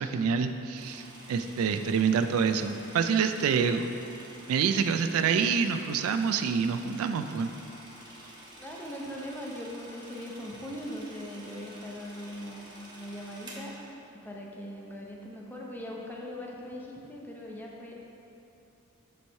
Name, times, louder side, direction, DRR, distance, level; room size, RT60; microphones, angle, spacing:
voice 1, 0.0-3.9 4.5-7.5, right 6 dB, 75° right, 9 dB, 0.3 m, -27 dB
sound 1, 0.8-14.0, right 1 dB, 20° right, 1.0 m, -49 dB
voice 2, 8.6-13.8 14.1-17.9, equal, 10° left, -2 dB, 0.6 m, -40 dB
6.9 x 3.1 x 5.4 m, 2.9 s
head